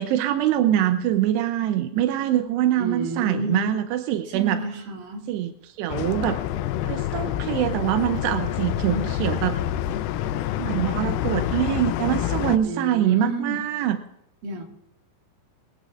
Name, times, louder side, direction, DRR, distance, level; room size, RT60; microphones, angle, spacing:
voice 1, 0.0-4.6 5.3-6.4 6.9-9.6 10.6-14.0, right 12 dB, 85° right, 8 dB, 2.8 m, -24 dB
voice 2, 2.8-3.7 4.3-5.2 8.8-9.1 12.6-13.6 14.4-14.6, right 2 dB, 60° right, 1 dB, 3.6 m, -30 dB
sound 1, 5.9-12.6, left 11 dB, 85° left, 2.1 m, -27 dB
21.5 x 15.5 x 2.5 m, 0.84 s
omnidirectional pair, 4.8 m